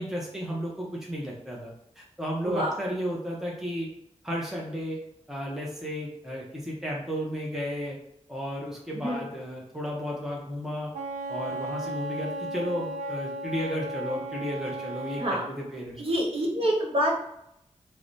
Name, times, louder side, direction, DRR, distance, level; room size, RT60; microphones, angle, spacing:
voice 1, 0.0-3.9 4.2-5.0 5.3-8.0 8.3-10.9 11.3-16.0, equal, 5° right, -3 dB, 0.7 m, -33 dB
voice 2, 8.9-9.3 15.2-15.5 16.0-17.1, equal, 50° right, -3 dB, 1.0 m, -27 dB
Wind instrument woodwind instrument, 10.9-15.5, right 1 dB, 90° right, 0.5 m, -35 dB
4.6 x 2.1 x 2.6 m, 0.78 s
wide cardioid pair, 95°, 12 cm